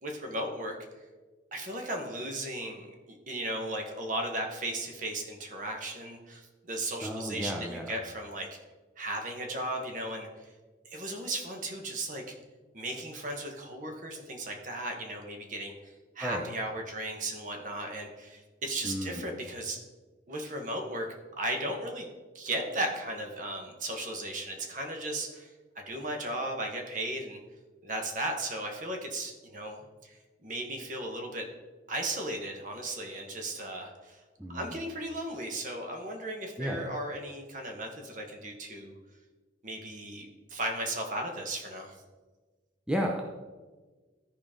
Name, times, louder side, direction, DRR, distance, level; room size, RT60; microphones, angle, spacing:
voice 1, 0.0-0.8 1.5-8.5 9.0-10.5 10.8-12.3 12.7-19.8 20.3-21.1 21.4-22.1 22.3-25.5 25.7-27.4 27.8-31.5 31.9-34.2 34.5-38.9 39.6-42.0, right 1 dB, 45° right, 2 dB, 1.2 m, -36 dB
voice 2, 7.0-8.0 16.2-16.5 18.8-19.3 34.4-34.8 36.6-36.9 42.9-43.2, equal, 5° right, 0 dB, 0.6 m, -33 dB
13.0 x 5.1 x 3.7 m, 1.3 s
head